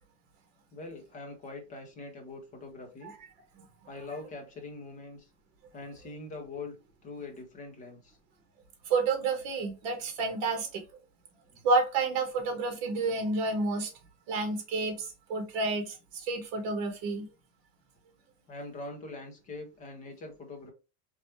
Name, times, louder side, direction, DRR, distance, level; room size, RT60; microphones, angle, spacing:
voice 1, 0.7-3.1 3.9-5.3 5.7-6.7 7.0-8.2 11.5-11.6 18.5-20.7, left 3 dB, 15° left, 0.6 m, -43 dB
voice 2, 8.9-10.8 11.6-13.9 14.3-17.3, right 3 dB, 40° right, 1.5 m, -30 dB
4.2 x 3.3 x 3.2 m
supercardioid pair, 175°, 47 cm